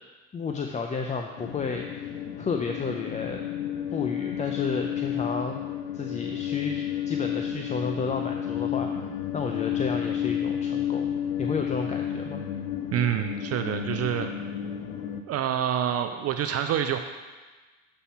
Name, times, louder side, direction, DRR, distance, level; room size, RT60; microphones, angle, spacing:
voice 1, 0.3-2.1 2.4-3.5 3.9-5.6 5.9-9.0 9.3-11.1 11.4-12.4, left 4 dB, 20° left, 3 dB, 0.5 m, -32 dB
sound 1, 1.4-15.2, left 9 dB, 80° left, 0.7 m, -31 dB
voice 2, 12.9-14.3 15.3-17.0, right 10 dB, 40° right, 7 dB, 0.5 m, -27 dB
7.0 x 5.5 x 4.2 m, 1.3 s
hypercardioid pair, 80°, 39 cm